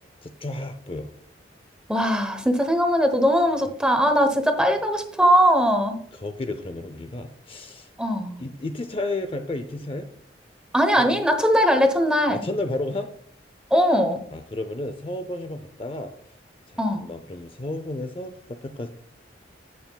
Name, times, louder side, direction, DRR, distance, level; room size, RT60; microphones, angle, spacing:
voice 1, 0.2-1.1 6.1-7.9 8.4-10.1 11.0-11.2 12.3-13.1 14.3-16.1 16.7-18.9, left 2 dB, 30° left, 8 dB, 0.5 m, -32 dB
voice 2, 1.9-6.0 8.0-8.4 10.7-12.5 13.7-14.2 16.8-17.0, equal, 5° right, 6 dB, 0.9 m, -20 dB
17.0 x 5.9 x 2.3 m, 0.64 s
head